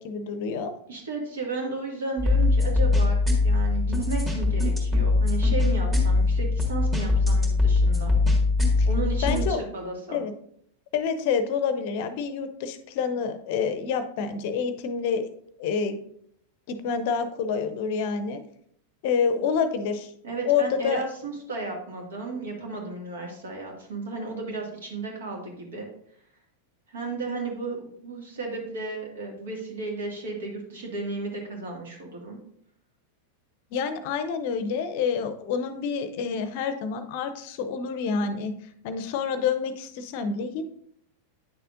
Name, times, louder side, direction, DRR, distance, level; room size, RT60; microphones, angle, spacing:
voice 1, 0.0-0.7 8.8-8.9 9.2-9.6 10.1-10.3 10.9-15.3 15.6-16.0 16.7-18.4 19.0-20.1 20.4-21.0 33.7-38.5 38.8-40.6, left 6 dB, 50° left, 10 dB, 0.6 m, -27 dB
voice 2, 0.9-3.2 3.4-8.2 8.8-10.2 20.2-25.9 26.9-32.4, right 3 dB, 60° right, 1 dB, 1.9 m, -34 dB
sound 1, 2.2-9.4, left 3 dB, 15° right, 1.9 m, -22 dB
9.4 x 6.7 x 2.5 m, 0.68 s
figure-of-eight pair, 90°, 0 cm